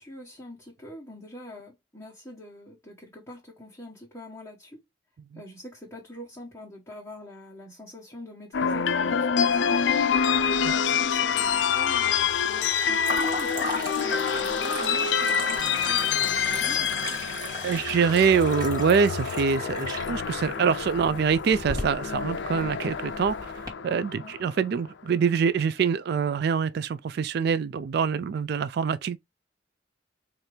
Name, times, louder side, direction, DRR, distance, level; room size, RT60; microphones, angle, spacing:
voice 1, 0.0-4.8 5.3-9.8 10.6-16.9 24.2-24.3, left 1 dB, 15° left, 1.2 m, -44 dB
sound 1, 8.5-24.7, left 7 dB, 75° left, 0.4 m, -27 dB
sound 2, 9.9-10.6 10.9-11.6 13.0-23.7, equal, 20° right, 1.2 m, -36 dB
voice 2, 17.6-23.5 23.8-29.2, right 6 dB, 60° right, 0.3 m, -25 dB
4.4 x 2.6 x 3.2 m
head